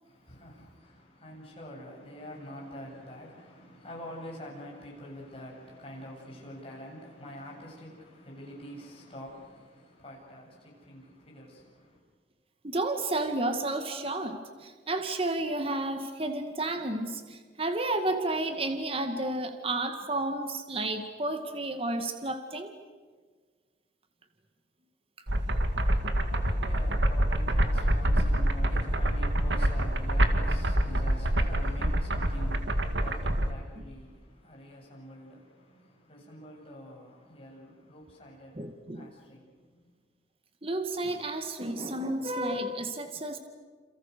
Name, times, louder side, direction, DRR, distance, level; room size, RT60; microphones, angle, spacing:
voice 1, 0.0-12.0 25.5-39.9, equal, 35° left, 7.9 m, -46 dB
voice 2, 12.6-22.7 33.8-33.9 38.6-39.1 40.6-43.4, right 2 dB, 30° right, 2.0 m, -31 dB
sound 1, 25.3-33.5, right 1 dB, 85° right, 2.2 m, -26 dB
29.0 x 28.5 x 6.8 m
head